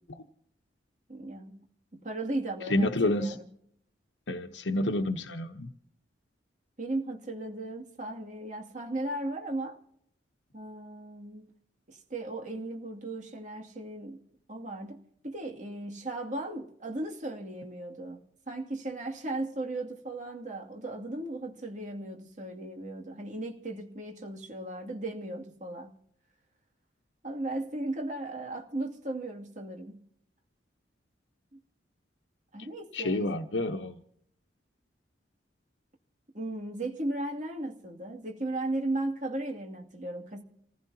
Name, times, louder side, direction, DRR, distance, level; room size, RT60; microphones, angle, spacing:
voice 1, 1.1-1.6 1.9-3.4 6.8-9.8 10.5-11.5 11.9-14.2 14.5-25.9 27.2-30.0 31.5-31.6 32.5-33.4 36.3-40.4, right 2 dB, 45° right, 2.5 m, -36 dB
voice 2, 2.7-3.4 4.3-5.7 32.9-33.9, left 1 dB, 85° left, 1.0 m, -29 dB
28.0 x 15.5 x 2.8 m
head